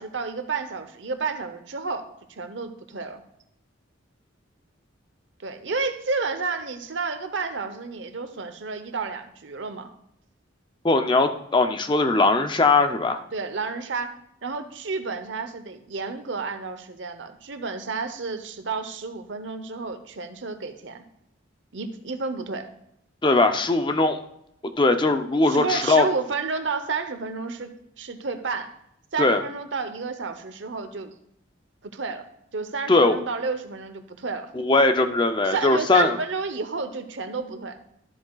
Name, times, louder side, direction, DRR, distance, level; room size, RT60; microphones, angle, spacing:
voice 1, 0.0-3.2 5.4-9.9 13.3-21.0 21.7-22.7 25.4-28.7 29.1-31.1 31.8-34.5 35.4-37.8, right 4 dB, 70° right, 8 dB, 0.9 m, -31 dB
voice 2, 10.8-13.2 23.2-24.2 24.8-26.1 29.2-29.4 32.9-33.2 34.6-36.2, left 3 dB, 25° left, 7 dB, 0.5 m, -20 dB
13.0 x 7.7 x 2.4 m, 0.75 s
head